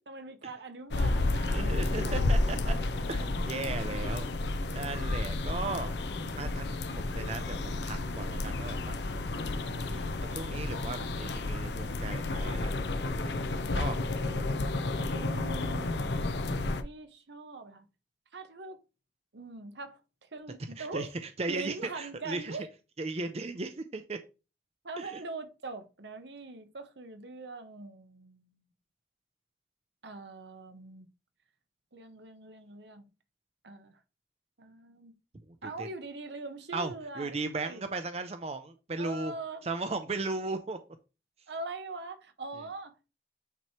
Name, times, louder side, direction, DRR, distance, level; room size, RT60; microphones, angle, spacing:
voice 1, 0.1-2.3 2.6-2.9 15.1-16.0 16.8-17.8 18.3-18.8 19.3-21.1 21.5-22.7 24.8-28.6 30.0-31.1 31.9-33.1 33.6-34.0 34.6-35.1 35.6-37.8 39.0-39.7 41.5-43.1, right 3 dB, 75° right, 1.0 m, -42 dB
sound 1, 0.9-16.8, left 2 dB, 70° left, 0.6 m, -31 dB
voice 2, 1.5-2.7 3.1-4.3 4.7-5.9 6.4-6.7 6.9-9.3 9.8-13.4 13.7-14.0 20.8-21.1 21.4-22.6 23.0-24.2 25.0-25.2 35.6-35.9 36.7-39.3 39.6-40.8, right 3 dB, 35° right, 0.6 m, -37 dB
9.1 x 3.1 x 4.4 m
head